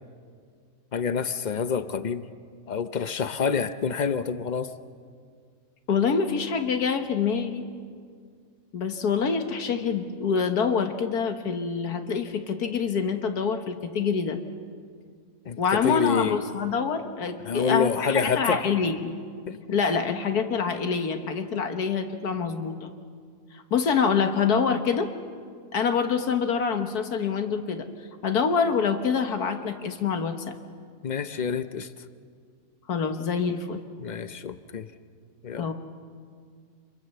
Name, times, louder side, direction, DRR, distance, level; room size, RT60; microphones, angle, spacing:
voice 1, 0.9-2.2 2.7-4.7 15.5-16.4 17.4-18.6 19.5-19.6 31.0-31.9 34.0-34.9 35.4-35.7, left 6 dB, 50° left, 0.5 m, -27 dB
voice 2, 5.9-7.6 8.7-14.4 15.6-19.1 19.7-22.9 23.5-25.1 25.7-27.9 28.2-30.5 32.9-33.8 35.6-35.7, left 6 dB, 70° left, 1.8 m, -26 dB
26.5 x 22.0 x 6.9 m
omnidirectional pair, 1.7 m